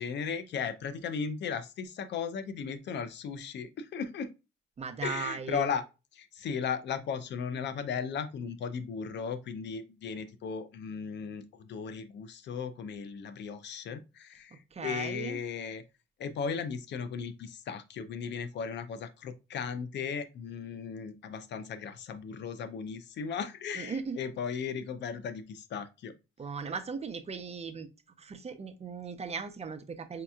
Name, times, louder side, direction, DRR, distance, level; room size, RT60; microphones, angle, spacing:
voice 1, 0.0-4.3 5.0-5.8 6.1-15.8 16.2-26.1, left 6 dB, 65° left, 0.5 m, -36 dB
voice 2, 4.8-5.7 14.7-15.4 23.8-24.2 26.4-27.9 28.2-30.2, right 5 dB, 30° right, 0.6 m, -37 dB
5.1 x 2.8 x 2.3 m
cardioid pair, 90°, 20 cm